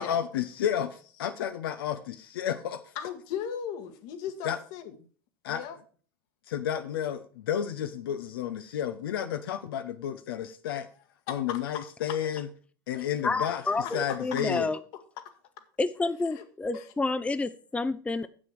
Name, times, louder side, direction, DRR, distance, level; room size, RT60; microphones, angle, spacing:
voice 1, 0.0-2.8 4.4-4.6 5.4-5.6 6.5-10.9 11.3-12.5 12.9-13.6 13.9-14.7, left 9 dB, 80° left, 0.6 m, -31 dB
voice 2, 2.9-4.9 5.5-5.8 11.3-11.6 12.9-13.1 13.8-14.2 16.4-16.5 16.7-16.9, left 8 dB, 65° left, 1.5 m, -37 dB
voice 3, 13.2-14.8 15.8-18.3, left 3 dB, 10° left, 0.5 m, -29 dB
7.6 x 6.2 x 6.4 m
hypercardioid pair, 90°, 12 cm